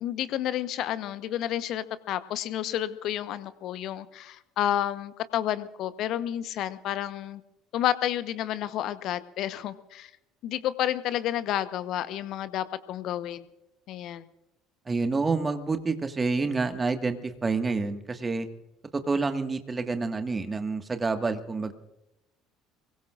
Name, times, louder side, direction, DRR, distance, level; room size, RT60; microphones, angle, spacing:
voice 1, 0.0-7.4 7.7-10.1 10.4-13.5 13.9-14.3, left 11 dB, 55° left, 14 dB, 1.0 m, -30 dB
voice 2, 14.9-18.5 18.9-21.7, right 4 dB, 25° right, 7 dB, 1.8 m, -28 dB
24.0 x 23.0 x 2.6 m, 0.91 s
figure-of-eight pair, 55°, 0 cm